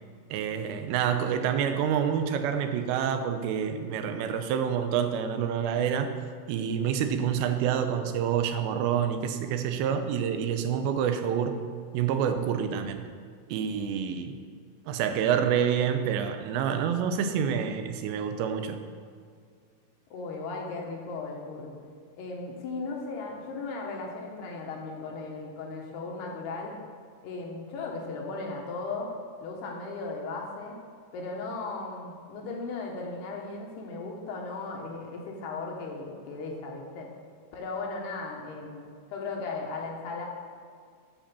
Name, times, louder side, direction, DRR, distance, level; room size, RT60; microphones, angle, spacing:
voice 1, 0.3-6.1 6.5-11.6 11.9-13.1 13.5-14.4 14.9-18.8, right 8 dB, 90° right, 7 dB, 3.0 m, -27 dB
voice 2, 20.1-21.8 22.1-26.8 27.2-29.1 29.4-30.8 31.1-37.1 37.5-38.8 39.1-40.3, left 3 dB, 75° left, 0 dB, 3.3 m, -36 dB
11.5 x 5.2 x 6.9 m, 2.1 s
omnidirectional pair, 4.9 m